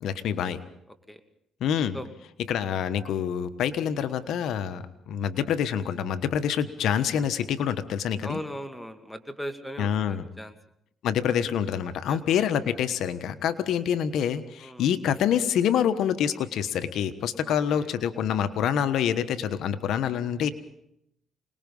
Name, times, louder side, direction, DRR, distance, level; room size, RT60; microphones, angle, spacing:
voice 1, 0.0-0.6 1.6-2.0 2.5-8.4 9.8-10.3 11.0-20.5, left 9 dB, 80° left, 11 dB, 1.2 m, -26 dB
voice 2, 8.2-10.5 12.1-12.2 14.6-14.9 17.5-17.9, equal, 5° left, 7 dB, 2.3 m, -38 dB
27.0 x 20.0 x 5.5 m, 0.78 s
cardioid pair, 90°, 0 cm